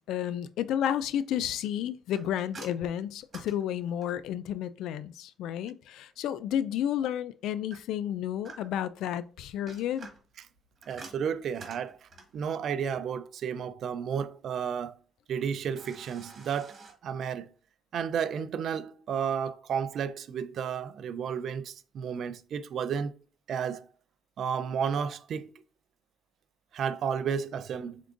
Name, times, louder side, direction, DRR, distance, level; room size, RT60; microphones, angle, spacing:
voice 1, 0.1-10.1, left 10 dB, 85° left, 0.3 m, -31 dB
sound 1, 2.1-4.4 7.7-8.9 9.5-12.4 15.7-16.9, right 3 dB, 40° right, 1.6 m, -49 dB
voice 2, 10.9-15.0 15.3-16.8 17.0-17.5 17.9-23.1 23.5-23.9 24.4-25.5 26.7-28.0, right 7 dB, 65° right, 0.4 m, -32 dB
4.6 x 3.6 x 2.5 m
cardioid pair, 95°, 0 cm